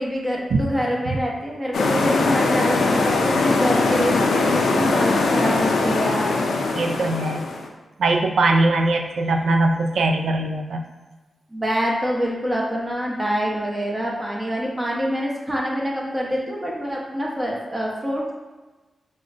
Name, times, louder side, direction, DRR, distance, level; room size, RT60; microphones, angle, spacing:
voice 1, 0.0-6.4 11.5-18.3, equal, 20° right, -3 dB, 0.8 m, -25 dB
sound 1, 1.7-7.7, left 3 dB, 85° left, 0.4 m, -21 dB
voice 2, 6.7-7.5 8.0-10.8, right 2 dB, 80° right, 4 dB, 0.3 m, -21 dB
4.8 x 2.1 x 2.5 m, 1.2 s
cardioid pair, 60°, 0 cm